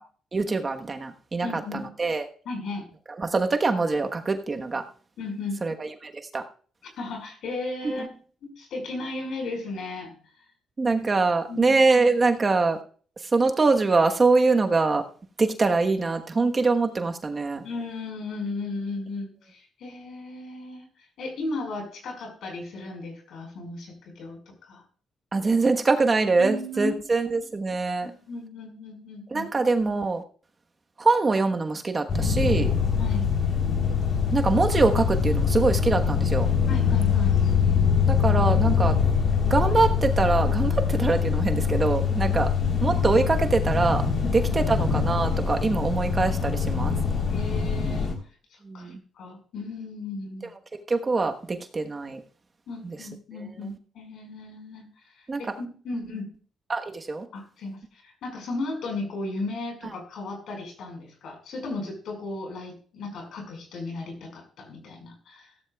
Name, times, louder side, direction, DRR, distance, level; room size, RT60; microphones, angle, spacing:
voice 1, 0.3-1.5 2.0-2.3 3.2-4.8 5.6-6.4 10.8-12.8 13.3-15.0 15.4-17.6 25.3-28.1 29.3-30.2 31.0-32.7 34.3-36.5 38.1-38.9 39.5-42.5 42.8-44.0 44.3-47.0 48.7-49.0 50.9-52.2 52.8-53.0 55.3-55.4 56.7-57.2, right 3 dB, 30° right, 5 dB, 1.2 m, -23 dB
voice 2, 1.4-1.9 2.5-2.9 5.2-5.6 7.0-8.1 8.4-10.5 11.5-11.8 12.3-12.4 17.6-24.8 26.4-26.9 28.0-29.5 33.0-33.3 36.7-37.4 42.1-42.8 44.2-44.4 47.3-48.1 48.5-50.5 52.7-56.3 57.3-65.5, left 2 dB, 70° left, 3 dB, 5.2 m, -35 dB
sound 1, 32.1-48.1, left 6 dB, 50° left, 3.6 m, -23 dB
16.0 x 13.0 x 2.4 m, 0.44 s
cardioid pair, 90°, 0 cm